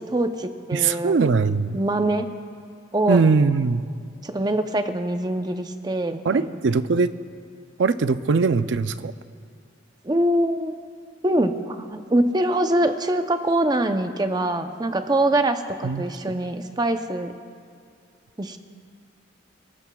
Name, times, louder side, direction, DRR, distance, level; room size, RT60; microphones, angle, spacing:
voice 1, 0.0-1.2 1.7-2.3 2.9-3.2 4.2-6.6 10.0-10.7 11.2-17.3 18.4-18.6, right 1 dB, 20° right, 7 dB, 0.6 m, -24 dB
voice 2, 0.7-1.8 3.1-3.9 6.2-7.1 7.8-9.1 15.8-16.1, right 4 dB, 75° right, 13 dB, 0.5 m, -21 dB
28.0 x 13.5 x 2.3 m, 2.2 s
head